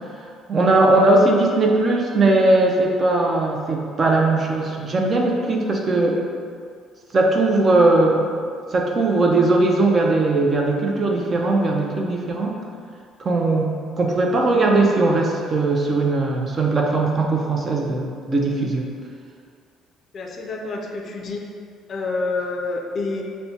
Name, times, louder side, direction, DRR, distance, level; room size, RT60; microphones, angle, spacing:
voice 1, 0.5-6.2 7.1-8.3 8.7-12.6 13.2-18.9, right 2 dB, 30° right, 0 dB, 0.5 m, -19 dB
voice 2, 20.1-21.4 21.9-23.2, left 3 dB, 40° left, 0 dB, 0.4 m, -28 dB
5.8 x 2.1 x 2.7 m, 2.2 s
cardioid pair, 125°, 0 cm